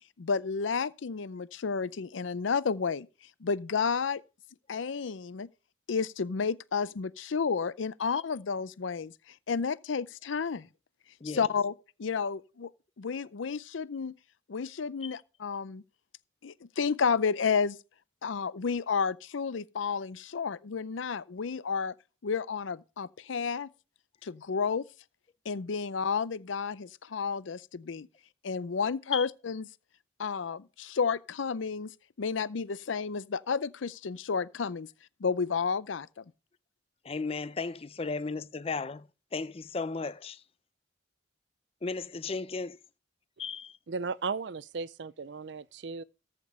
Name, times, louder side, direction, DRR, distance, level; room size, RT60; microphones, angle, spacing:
voice 1, 0.2-3.1 3.4-4.2 4.7-5.5 5.9-9.1 9.5-10.7 11.3-11.7 12.0-12.7 13.0-14.1 14.5-15.8 16.4-17.8 18.2-21.9 22.2-23.7 24.2-24.8 25.5-28.1 28.4-29.7 30.2-31.9 32.2-34.9 35.2-36.2, left 5 dB, 85° left, 0.5 m, -31 dB
voice 2, 37.0-40.3 41.8-42.7 43.4-43.7, left 4 dB, 30° left, 0.5 m, -35 dB
voice 3, 43.9-46.0, right 4 dB, 65° right, 0.5 m, -36 dB
14.0 x 5.2 x 5.4 m
head